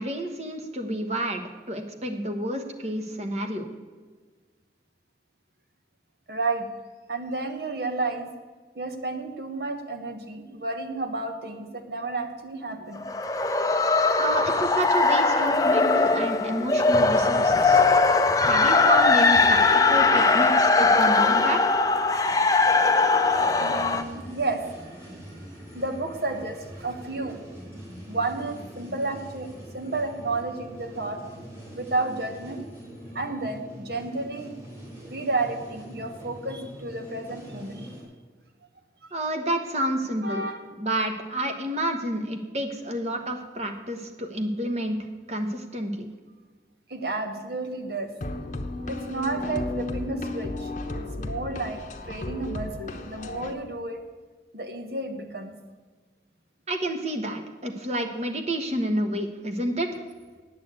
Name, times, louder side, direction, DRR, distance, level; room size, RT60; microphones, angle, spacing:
voice 1, 0.0-3.7 14.2-17.8 18.4-19.6 19.9-21.6 39.1-45.0 45.3-46.1 56.7-60.0, right 1 dB, 35° right, 5 dB, 1.2 m, -29 dB
voice 2, 6.3-6.7 7.1-8.3 8.7-13.0 23.6-24.6 25.7-27.4 28.1-29.5 29.7-31.2 31.7-32.6 33.1-34.5 35.1-37.9 40.2-40.7 46.9-48.1 48.8-51.8 52.1-54.0 54.5-55.5, right 3 dB, 60° right, 5 dB, 1.4 m, -31 dB
sound 1, 12.9-24.0, left 3 dB, 20° left, 0.5 m, -20 dB
sound 2, 23.3-38.0, right 1 dB, 15° right, 3.5 m, -43 dB
sound 3, 48.2-53.5, left 2 dB, 40° left, 0.8 m, -33 dB
8.9 x 8.1 x 8.3 m, 1.4 s
head